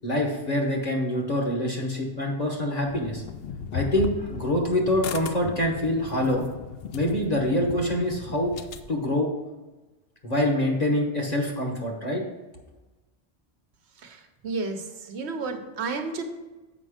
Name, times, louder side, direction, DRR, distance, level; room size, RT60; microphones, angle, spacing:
voice 1, 0.0-3.2 3.7-6.4 6.9-8.5 8.9-9.3 10.2-12.2, left 1 dB, 40° left, 0 dB, 1.1 m, -25 dB
sound 1, 2.9-8.9, left 6 dB, 65° left, 0.8 m, -36 dB
voice 2, 14.0-16.2, right 4 dB, 80° right, 6 dB, 1.2 m, -32 dB
7.3 x 5.3 x 4.9 m, 1.1 s
omnidirectional pair, 1.1 m